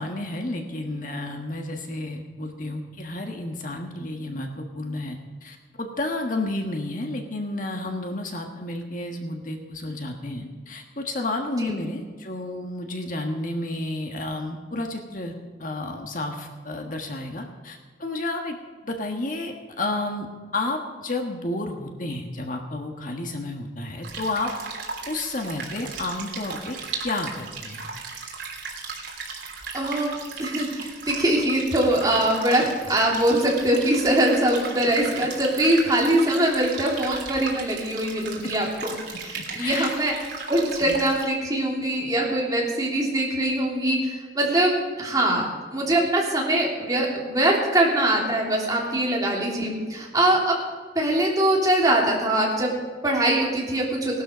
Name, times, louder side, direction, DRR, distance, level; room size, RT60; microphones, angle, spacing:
voice 1, 0.0-15.3 15.6-18.5 18.8-20.3 20.5-24.5 25.1-27.9 39.6-39.9 40.8-40.9, left 2 dB, 45° left, 3 dB, 1.6 m, -31 dB
sound 1, 24.0-41.2, right 4 dB, 75° right, 3.1 m, -36 dB
voice 2, 29.7-38.9 39.2-40.1 40.5-44.7 45.0-45.5 45.7-50.6 50.9-54.2, right 1 dB, 20° right, -3 dB, 3.3 m, -23 dB
18.0 x 12.5 x 5.2 m, 1.5 s
head